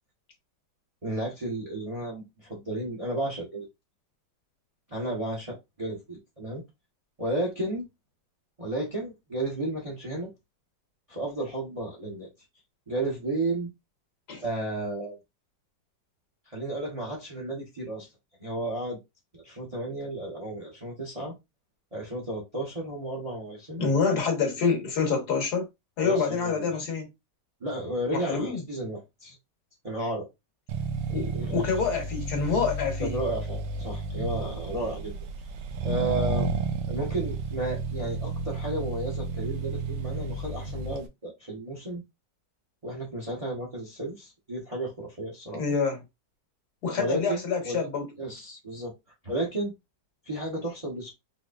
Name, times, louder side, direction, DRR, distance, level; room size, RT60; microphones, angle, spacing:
voice 1, 1.0-3.7 4.9-6.6 7.2-7.9 8.6-10.3 11.1-12.3 12.9-13.7 14.4-15.2 16.5-18.1 18.4-19.0 19.3-21.3 21.9-23.8 26.0-26.7 27.6-29.3 29.8-30.3 31.3-31.7 33.0-35.1 35.8-36.5 36.9-42.0 42.8-45.6 47.0-47.9 48.2-48.9 49.2-49.7 50.3-51.1, right 1 dB, 25° right, 0.9 m, -33 dB
voice 2, 23.8-25.7 26.0-27.1 28.1-28.6 31.1-33.2 45.5-46.0 46.8-48.0, left 5 dB, 65° left, 1.5 m, -27 dB
Accelerating revving vroom, 30.7-41.1, right 3 dB, 90° right, 1.3 m, -32 dB
4.0 x 3.0 x 2.4 m
omnidirectional pair, 1.9 m